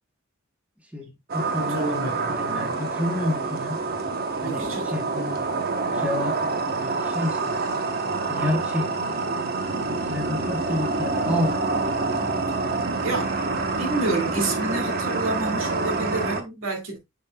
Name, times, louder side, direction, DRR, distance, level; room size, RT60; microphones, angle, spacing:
voice 1, 0.9-3.8 4.4-5.1 5.9-7.6 8.3-9.6 10.1-11.6, left 1 dB, 5° right, 1.1 m, -30 dB
sound 1, 1.3-16.4, right 3 dB, 50° right, 1.0 m, -27 dB
voice 2, 1.6-2.8 4.4-5.4 12.2-12.4 13.0-13.3 13.7-17.0, right 2 dB, 75° right, 2.3 m, -29 dB
7.1 x 5.9 x 2.2 m
head